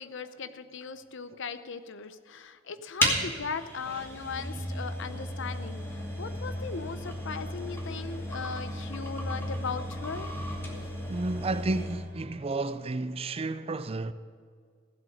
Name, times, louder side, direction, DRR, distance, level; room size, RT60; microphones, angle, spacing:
voice 1, 0.0-10.3 10.6-10.9, left 5 dB, 65° left, 0.7 m, -38 dB
sound 1, 3.0-12.1, equal, 10° left, 2.2 m, -34 dB
voice 2, 11.1-14.1, right 2 dB, 30° right, 0.5 m, -32 dB
16.0 x 7.9 x 6.5 m
head